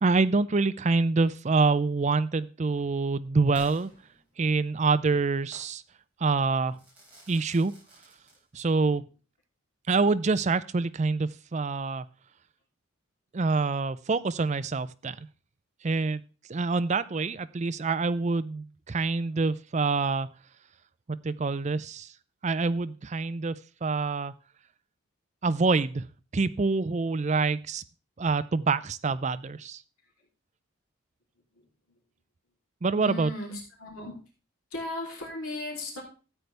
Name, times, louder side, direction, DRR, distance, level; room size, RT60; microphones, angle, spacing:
voice 1, 0.0-3.9 4.4-5.8 6.2-6.8 7.3-7.7 8.5-9.0 9.9-12.1 13.3-15.2 15.8-16.2 16.5-20.3 21.1-22.1 22.4-24.3 25.4-26.1 26.3-27.8 28.2-29.8 32.8-33.3, right 4 dB, 30° right, 14 dB, 0.4 m, -26 dB
Crackle / Fireworks, 3.5-4.7 5.5-5.8 6.7-8.7, right 1 dB, 5° right, 5.8 m, -52 dB
voice 2, 33.0-34.2 34.7-36.0, left 2 dB, 80° left, -1 dB, 3.2 m, -36 dB
13.5 x 8.1 x 3.3 m, 0.36 s
head